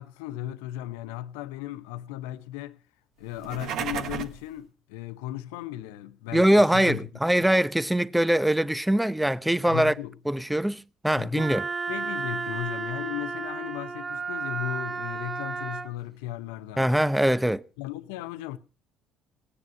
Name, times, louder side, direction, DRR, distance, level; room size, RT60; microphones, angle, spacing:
voice 1, 0.0-2.8 3.2-7.1 9.7-10.1 11.2-11.5 11.9-16.9 17.8-18.6, left 14 dB, 75° left, 0.7 m, -36 dB
sound 1, 3.3-4.5, right 8 dB, 60° right, 1.3 m, -33 dB
voice 2, 6.3-9.9 10.3-11.7 16.8-17.6, right 1 dB, 5° right, 0.7 m, -22 dB
Wind instrument woodwind instrument, 11.4-15.9, right 5 dB, 25° right, 1.5 m, -33 dB
18.0 x 9.9 x 5.3 m
hypercardioid pair, 55°, 0 cm